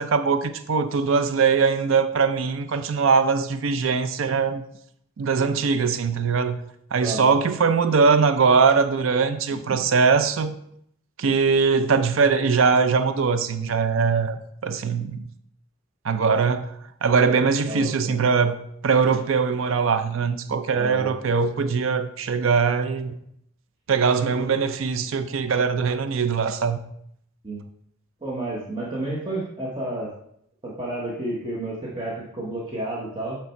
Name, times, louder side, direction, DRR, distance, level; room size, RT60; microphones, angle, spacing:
voice 1, 0.0-4.6 5.2-6.6 6.9-10.5 11.2-15.3 16.0-23.1 23.9-26.8, right 5 dB, 80° right, 0.5 m, -21 dB
voice 2, 7.0-7.3 9.7-9.8 17.6-18.2 20.7-21.1 24.3-24.4 27.4-27.6 28.2-30.1 30.6-33.4, right 1 dB, 25° right, 1.0 m, -31 dB
8.2 x 3.3 x 4.3 m
head